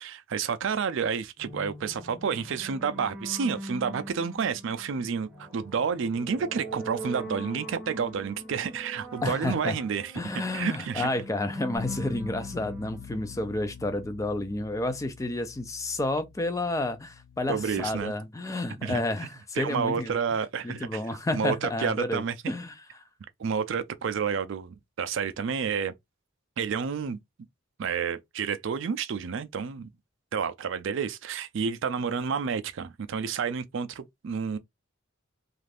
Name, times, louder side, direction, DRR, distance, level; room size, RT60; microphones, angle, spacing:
voice 1, 0.0-11.1 17.5-18.1 18.8-19.3 19.5-21.0 21.3-22.5 23.4-25.9 26.6-27.2 27.8-29.9 30.3-34.6, right 6 dB, 60° right, 0.4 m, -30 dB
sound 1, 1.4-13.9, equal, ahead, 0.7 m, -42 dB
voice 2, 9.2-9.8 10.2-20.1 20.6-23.0, left 2 dB, 15° left, 0.3 m, -31 dB
Bass guitar, 11.8-18.0, left 7 dB, 85° left, 0.4 m, -45 dB
2.5 x 2.4 x 3.3 m
head